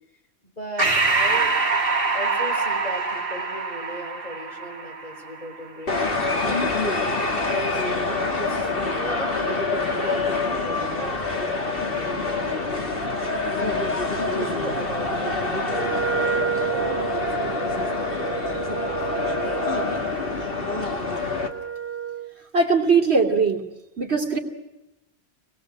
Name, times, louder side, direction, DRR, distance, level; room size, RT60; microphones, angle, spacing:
voice 1, 0.6-1.5 2.1-6.9 7.4-13.0 14.2-20.9, equal, 40° left, 2 dB, 4.7 m, -37 dB
Breathing, 0.8-5.7, right 3 dB, 60° right, 2.9 m, -24 dB
sound 1, 5.9-21.5, left 3 dB, 60° left, 2.5 m, -26 dB
Wind instrument woodwind instrument, 15.6-22.3, right 7 dB, 15° right, 0.9 m, -31 dB
voice 2, 22.5-23.6 24.0-24.4, right 4 dB, 80° right, 3 dB, 3.0 m, -20 dB
26.5 x 20.5 x 7.8 m, 0.99 s
omnidirectional pair, 1.1 m